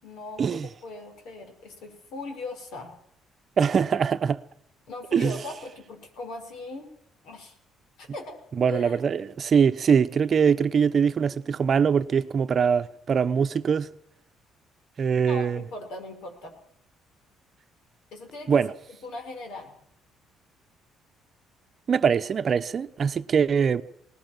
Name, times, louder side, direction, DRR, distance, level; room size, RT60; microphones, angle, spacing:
voice 1, 0.0-2.9 4.9-6.9 7.2-7.6 8.0-8.4 8.7-9.0 15.3-16.5 18.1-18.6 19.0-19.7, left 2 dB, 75° left, 5.9 m, -39 dB
voice 2, 3.6-4.4 5.1-5.4 8.6-13.9 15.0-15.6 18.5-18.7 21.9-23.8, right 6 dB, 45° right, 0.9 m, -22 dB
20.5 x 19.5 x 7.6 m
cardioid pair, 110°, 0 cm